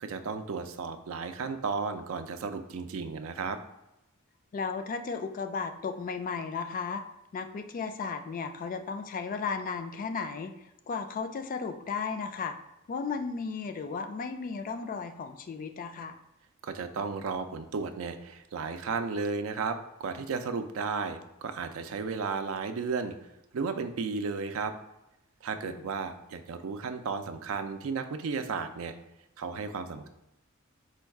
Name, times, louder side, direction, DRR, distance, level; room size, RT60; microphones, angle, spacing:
voice 1, 0.0-3.6 16.6-23.1 23.5-24.7 25.4-28.9 29.4-30.1, right 5 dB, 70° right, 9 dB, 0.4 m, -34 dB
voice 2, 4.5-7.0 7.3-12.5 12.9-16.2 25.6-25.9, left 5 dB, 40° left, 8 dB, 0.3 m, -35 dB
4.4 x 2.3 x 4.5 m, 0.91 s
head